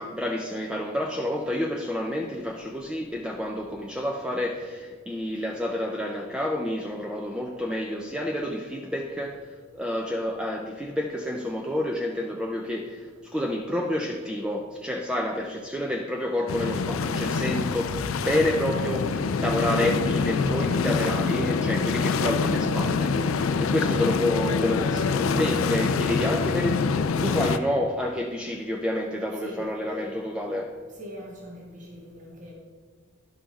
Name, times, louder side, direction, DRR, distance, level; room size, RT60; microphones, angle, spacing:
voice 1, 0.0-26.8 27.2-30.7, left 1 dB, 5° right, 1 dB, 0.4 m, -29 dB
sound 1, 16.5-27.6, left 4 dB, 85° left, 0.4 m, -25 dB
voice 2, 31.0-32.5, equal, 40° right, -2 dB, 1.5 m, -41 dB
11.0 x 5.7 x 4.1 m, 1.5 s
head